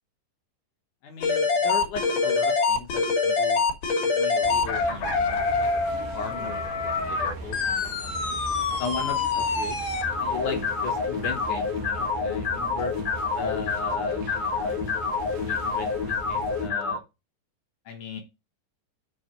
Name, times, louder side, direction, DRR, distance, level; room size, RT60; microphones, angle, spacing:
voice 1, 1.0-3.7 4.0-8.3 8.8-9.8 10.2-12.9 13.3-17.0 17.9-18.2, left 6 dB, 75° left, 3 dB, 1.8 m, -37 dB
sound 1, 1.2-17.0, left 4 dB, 55° left, 2.6 m, -26 dB
sound 2, 4.4-16.7, right 3 dB, 70° right, 1.5 m, -39 dB
6.9 x 4.7 x 6.6 m, 0.25 s
omnidirectional pair, 5.3 m